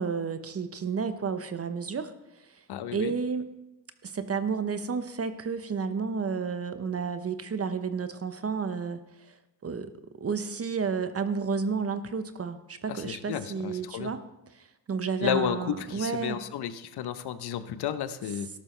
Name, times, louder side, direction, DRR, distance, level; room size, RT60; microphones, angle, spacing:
voice 1, 0.0-2.6 2.9-3.5 4.0-9.9 10.2-14.2 14.5-16.4, right 5 dB, 35° right, 10 dB, 1.0 m, -31 dB
voice 2, 2.7-3.1 12.9-14.1 15.2-18.5, left 9 dB, 60° left, 12 dB, 1.0 m, -32 dB
13.5 x 12.0 x 3.3 m, 0.96 s
supercardioid pair, 75°, 43 cm